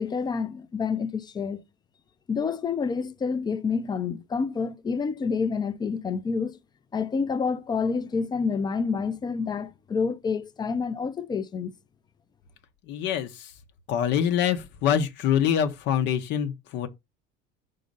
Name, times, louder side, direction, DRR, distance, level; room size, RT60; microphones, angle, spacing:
voice 1, 0.0-1.6 2.3-6.6 6.9-11.7, left 5 dB, 20° left, 0.6 m, -28 dB
voice 2, 12.9-13.5 13.9-16.9, left 9 dB, 60° left, 0.9 m, -25 dB
5.3 x 3.8 x 5.3 m
cardioid pair, 150°, 20 cm